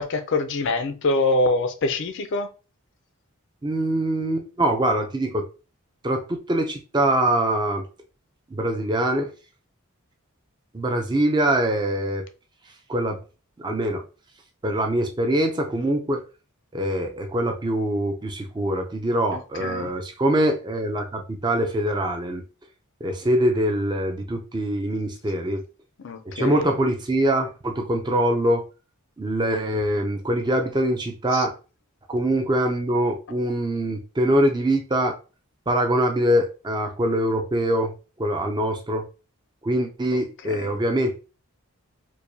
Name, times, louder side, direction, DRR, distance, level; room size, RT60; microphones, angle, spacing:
voice 1, 0.0-2.5 19.6-19.9 26.0-26.7 31.3-31.4 40.4-40.7, left 2 dB, 55° left, 0.5 m, -25 dB
voice 2, 3.6-5.4 6.0-7.8 8.5-9.3 10.7-12.2 12.9-13.2 13.6-14.0 14.6-16.2 16.7-22.4 23.0-25.6 26.4-28.6 29.2-31.5 32.1-35.1 35.7-37.9 38.2-39.0 39.6-41.2, right 1 dB, 20° right, 0.4 m, -23 dB
4.6 x 2.2 x 2.7 m
head